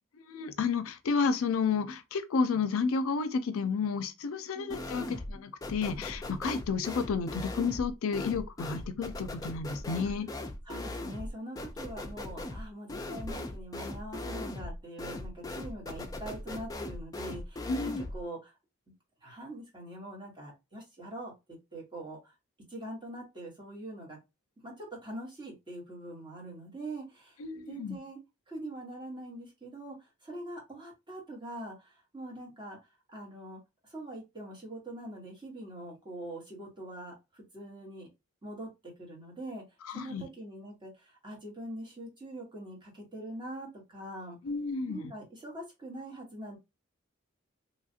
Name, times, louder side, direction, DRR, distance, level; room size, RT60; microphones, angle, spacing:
voice 1, 0.1-10.3 17.7-18.0 27.4-28.0 39.9-40.3 44.4-45.1, left 5 dB, 80° left, 0.4 m, -31 dB
sound 1, 4.7-5.4 5.6-18.2, left 2 dB, 15° left, 0.3 m, -39 dB
voice 2, 10.6-18.5 19.2-22.3 22.7-24.2 24.6-27.4 27.7-28.2 28.5-32.8 33.1-38.1 38.4-39.6 39.9-44.4 44.9-46.6, right 1 dB, 20° right, 1.3 m, -43 dB
3.1 x 2.4 x 2.7 m
head